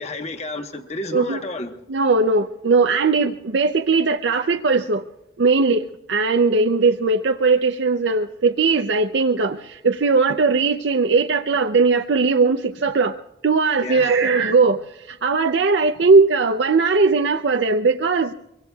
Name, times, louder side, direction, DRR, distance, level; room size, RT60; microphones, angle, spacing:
voice 1, 0.0-1.7 13.8-14.2, left 2 dB, 35° left, 1.1 m, -30 dB
voice 2, 1.9-5.0 5.4-13.2 13.4-18.3, right 4 dB, 70° right, 0.5 m, -19 dB
24.5 x 23.0 x 2.3 m
head